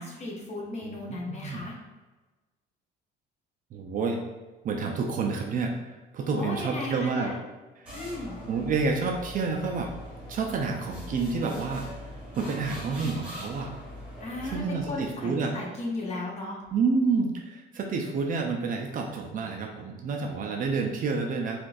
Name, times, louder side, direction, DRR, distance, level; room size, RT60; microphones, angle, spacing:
voice 1, 0.0-1.7 6.2-7.4 7.9-8.4 14.2-16.6, left 2 dB, 35° left, -2 dB, 0.8 m, -35 dB
voice 2, 0.8-1.6 3.7-4.2 4.6-5.8 6.1-7.3 8.5-9.9 10.3-11.9 12.4-13.7 14.4-15.6 16.7-21.6, right 4 dB, 40° right, 2 dB, 0.4 m, -29 dB
sound 1, 7.9-15.3, left 1 dB, 5° right, 1.1 m, -42 dB
3.8 x 2.4 x 2.5 m, 1.2 s
cardioid pair, 130°, 20 cm